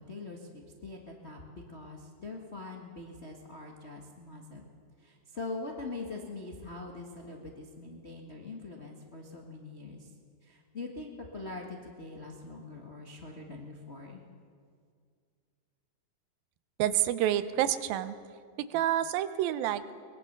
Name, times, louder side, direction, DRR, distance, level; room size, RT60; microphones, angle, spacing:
voice 1, 0.0-4.7 5.0-10.1 10.4-14.2, left 3 dB, 75° left, -1 dB, 0.6 m, -43 dB
voice 2, 16.8-18.2 18.6-19.9, right 11 dB, 85° right, 12 dB, 2.6 m, -28 dB
23.0 x 20.5 x 6.7 m, 2.2 s
omnidirectional pair, 4.1 m